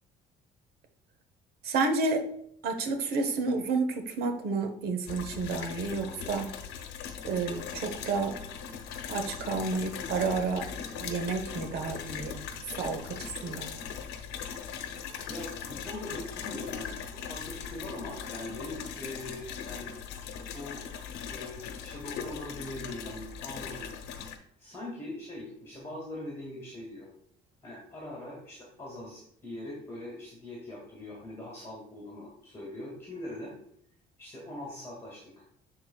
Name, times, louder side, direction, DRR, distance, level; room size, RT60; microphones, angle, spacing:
voice 1, 1.6-2.3 2.6-6.5 7.2-8.4 9.1-10.7 10.9-12.4 12.8-13.8, right 4 dB, 70° right, 7 dB, 1.0 m, -30 dB
sound 1, 5.1-24.4, left 7 dB, 85° left, 0.9 m, -40 dB
voice 2, 15.3-19.9 20.5-20.8 21.2-24.0 24.6-27.1 27.6-33.6 34.2-35.4, left 1 dB, 15° left, -4 dB, 2.0 m, -42 dB
11.0 x 4.0 x 2.3 m, 0.69 s
cardioid pair, 110°, 17 cm